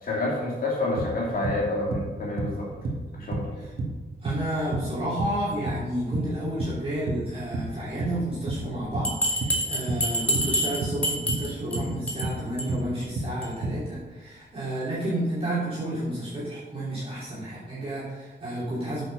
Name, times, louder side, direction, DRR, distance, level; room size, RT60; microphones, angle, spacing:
voice 1, 0.0-2.7 3.2-3.5, left 2 dB, 50° left, -4 dB, 2.6 m, -28 dB
sound 1, 1.0-7.3 7.5-13.9, right 2 dB, 55° right, 1.5 m, -31 dB
voice 2, 4.2-19.1, right 1 dB, 30° right, -10 dB, 3.1 m, -31 dB
Bell, 9.0-11.8 12.1-12.3 12.6-12.7 13.0-13.1 13.4-13.5, equal, 5° left, 2.4 m, -27 dB
9.1 x 6.9 x 5.5 m, 1.3 s
wide cardioid pair, 145°, 19 cm